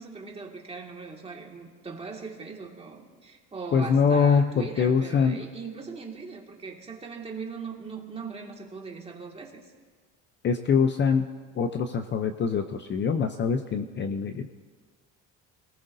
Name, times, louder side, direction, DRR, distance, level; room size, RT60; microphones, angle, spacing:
voice 1, 0.0-9.7, right 4 dB, 15° right, 0 dB, 2.0 m, -40 dB
voice 2, 3.7-5.4 10.4-11.2 11.6-14.5, left 6 dB, 35° left, 7 dB, 0.6 m, -24 dB
27.5 x 19.0 x 2.7 m, 1.5 s
cardioid pair, 145°, 34 cm